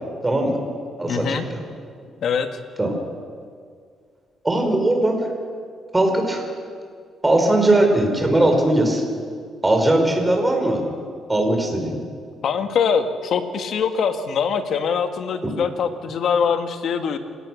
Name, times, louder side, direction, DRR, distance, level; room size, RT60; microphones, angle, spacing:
voice 1, 0.2-0.6 1.0-1.6 2.8-2.9 4.4-5.2 5.9-6.4 7.2-9.0 9.6-10.8 11.3-12.0, right 1 dB, 15° right, 3 dB, 5.1 m, -19 dB
voice 2, 1.1-1.4 2.2-2.5 12.4-17.2, left 6 dB, 65° left, 7 dB, 1.9 m, -23 dB
28.0 x 17.5 x 6.5 m, 2.1 s
cardioid pair, 90°, 0 cm